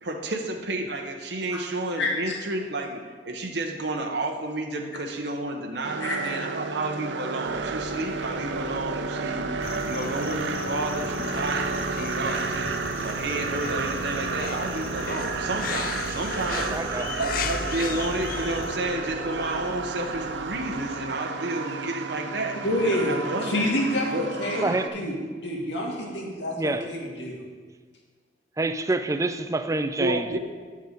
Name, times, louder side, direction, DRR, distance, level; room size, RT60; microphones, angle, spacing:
voice 1, 0.0-16.8 17.1-23.7 24.1-24.3 29.7-30.4, right 2 dB, 70° right, 3 dB, 0.9 m, -31 dB
voice 2, 2.0-2.4 6.0-6.2 22.6-27.4, left 1 dB, 85° left, -1 dB, 1.9 m, -28 dB
sound 1, 5.8-24.9, right 4 dB, 90° right, 0.6 m, -32 dB
sound 2, 7.4-21.0, right 1 dB, 35° right, 0.9 m, -41 dB
sound 3, 9.6-18.8, left 6 dB, 55° left, 0.4 m, -36 dB
voice 3, 16.7-17.1 24.6-24.9 26.0-26.1 26.6-26.9 28.6-30.4, right 2 dB, 20° right, 10 dB, 0.4 m, -27 dB
9.7 x 6.6 x 5.0 m, 1.5 s
head